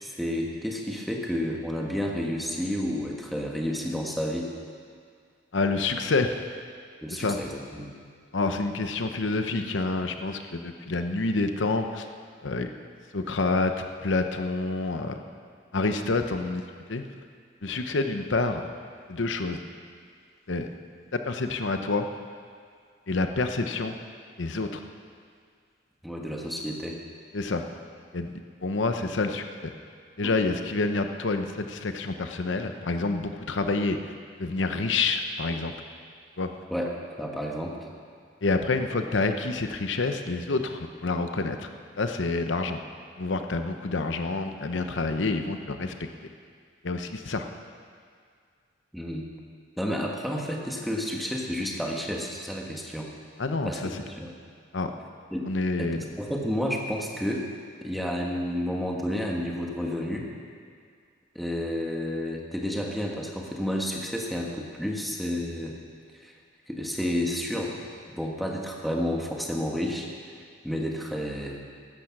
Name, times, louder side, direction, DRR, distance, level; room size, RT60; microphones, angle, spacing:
voice 1, 0.0-4.5 7.0-7.9 26.0-27.0 36.7-36.9 37.2-37.8 48.9-49.3 49.8-53.1 53.6-53.8 54.1-54.3 55.3-55.5 55.8-57.5 57.8-60.3 61.3-65.7 66.2-66.3 66.7-67.8 68.1-70.1 70.6-71.6, equal, ahead, -1 dB, 1.5 m, -30 dB
voice 2, 5.5-6.4 7.1-7.4 8.3-12.1 12.4-12.7 13.1-13.7 14.0-15.2 15.7-16.6 16.9-17.1 17.6-18.7 19.1-19.6 20.5-20.7 21.1-22.1 23.1-24.0 24.4-24.8 27.3-27.6 28.1-29.7 30.2-34.1 34.4-35.7 36.4-36.5 38.4-41.7 42.0-42.8 43.2-46.1 46.8-47.5 53.4-54.0 54.7-54.9 55.4-56.1, left 3 dB, 75° left, 7 dB, 0.8 m, -28 dB
15.5 x 13.0 x 6.0 m, 2.1 s
head